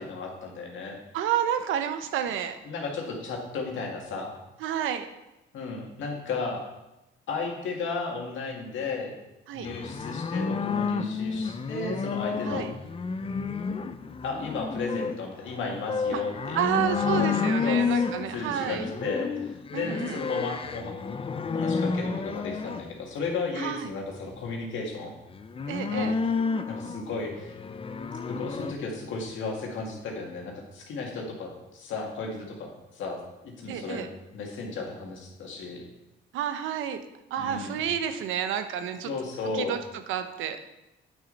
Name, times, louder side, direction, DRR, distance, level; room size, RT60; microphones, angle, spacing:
voice 1, 0.0-1.0 2.7-4.3 5.5-6.6 7.3-9.2 9.5-12.7 14.2-17.3 17.6-18.0 18.3-21.0 21.5-25.1 25.9-26.2 26.7-27.5 28.3-32.7 33.0-34.1 34.3-35.8 37.4-37.8 39.0-39.8, left 4 dB, 75° left, 0 dB, 2.1 m, -34 dB
voice 2, 1.1-2.6 4.6-5.1 9.5-9.7 12.4-12.7 16.1-16.2 16.5-18.8 19.7-20.2 23.6-23.9 25.7-26.1 33.7-34.1 36.3-37.0 37.3-39.1 39.5-39.8 40.1-40.6, right 9 dB, 90° right, 9 dB, 0.8 m, -30 dB
sound 1, 9.6-22.8 25.3-28.7, left 5 dB, 30° left, 0.5 m, -30 dB
8.5 x 6.4 x 4.0 m, 0.95 s
cardioid pair, 90°, 20 cm